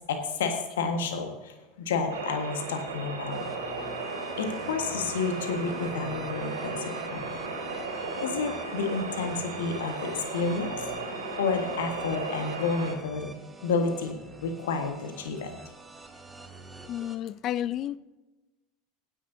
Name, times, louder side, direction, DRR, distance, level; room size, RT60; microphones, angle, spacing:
voice 1, 0.1-3.4 4.4-7.2 8.0-13.3 13.6-14.2 14.4-15.5, left 4 dB, 65° left, 5 dB, 1.6 m, -30 dB
sound 1, 2.1-12.9, right 3 dB, 75° right, 4.0 m, -35 dB
sound 2, 3.3-17.2, right 2 dB, 15° right, 1.6 m, -48 dB
voice 2, 16.9-18.0, left 12 dB, 40° left, 19 dB, 0.4 m, -31 dB
16.5 x 10.0 x 2.8 m, 1.1 s
figure-of-eight pair, 75°, 0 cm